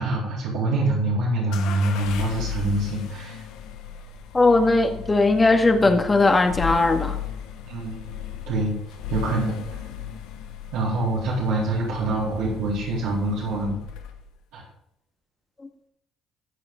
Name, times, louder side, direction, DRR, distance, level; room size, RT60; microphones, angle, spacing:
voice 1, 0.0-3.4 5.8-5.9 7.7-8.7 9.1-9.8 10.7-13.8 14.5-14.6, right 2 dB, 85° right, -7 dB, 3.5 m, -25 dB
sound 1, 1.5-14.4, left 8 dB, 85° left, 1.2 m, -36 dB
voice 2, 4.3-7.2, left 2 dB, 25° left, 5 dB, 2.0 m, -18 dB
15.0 x 8.0 x 3.9 m, 0.76 s
supercardioid pair, 65°, 0 cm